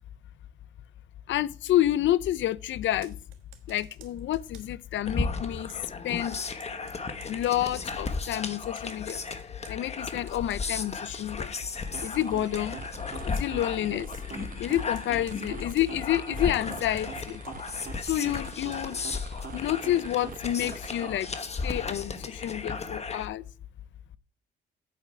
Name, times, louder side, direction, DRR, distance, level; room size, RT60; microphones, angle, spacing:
voice 1, 1.3-3.1 3.7-5.7 6.0-6.4 7.3-9.2 9.7-11.5 12.0-12.8 13.2-14.1 14.6-17.4 18.0-19.0 19.5-21.3 21.6-23.4, left 13 dB, 70° left, 0.6 m, -29 dB
Computer keyboard, 2.9-4.9 5.7-11.4 11.7-12.7 13.2-13.7 14.0-14.4 14.7-15.9 16.4-19.5, right 11 dB, 90° right, 1.4 m, -55 dB
sound 1, 5.1-23.3, left 4 dB, 30° left, 1.3 m, -35 dB
sound 2, 11.6-21.5, right 7 dB, 45° right, 0.7 m, -44 dB
9.1 x 8.3 x 4.6 m
cardioid pair, 90°, 20 cm